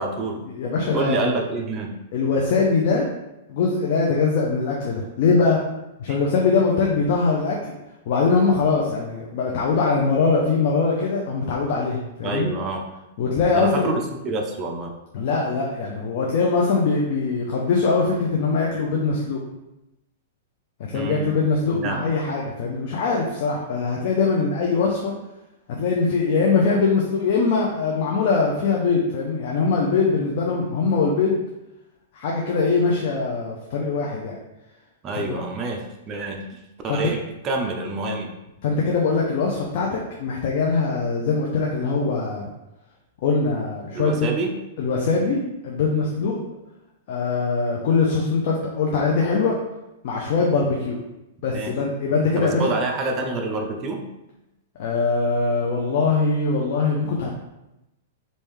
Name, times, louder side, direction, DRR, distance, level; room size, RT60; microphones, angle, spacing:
voice 1, 0.0-0.4 0.9-2.0 6.1-6.2 12.2-12.9 13.5-14.9 20.9-21.4 21.7-22.0 35.0-38.3 43.9-44.6 51.5-51.8 52.3-54.0, right 3 dB, 25° right, 2 dB, 0.5 m, -27 dB
voice 2, 0.5-1.4 2.1-3.1 3.5-5.6 6.0-7.7 8.1-12.5 13.2-13.9 15.1-19.4 20.9-25.1 25.8-31.4 32.1-34.3 35.1-35.4 36.9-37.0 38.6-42.5 43.2-44.3 44.8-46.4 47.1-49.5 50.0-51.0 51.4-52.6 54.8-57.3, left 4 dB, 55° left, -2 dB, 0.6 m, -22 dB
3.4 x 2.6 x 3.2 m, 0.93 s
hypercardioid pair, 140°, 0 cm